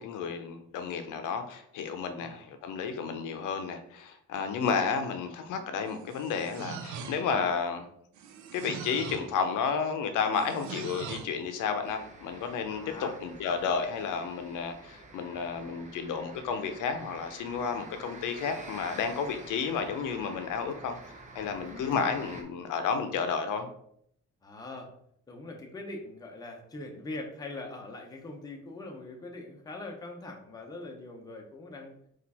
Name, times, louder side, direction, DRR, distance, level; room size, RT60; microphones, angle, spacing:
voice 1, 0.0-7.8 8.5-21.0 21.3-23.7, left 6 dB, 80° left, 7 dB, 0.6 m, -32 dB
sound 1, 5.9-7.5 8.1-9.4 10.3-11.4, right 6 dB, 65° right, 0.5 m, -42 dB
voice 2, 10.3-10.7 12.7-13.2 21.7-22.2 24.4-24.9 25.3-31.9, left 2 dB, 10° left, 1 dB, 0.6 m, -42 dB
sound 2, 11.8-22.4, right 3 dB, 25° right, 0.6 m, -48 dB
4.4 x 2.5 x 4.1 m, 0.70 s
cardioid pair, 150°, 31 cm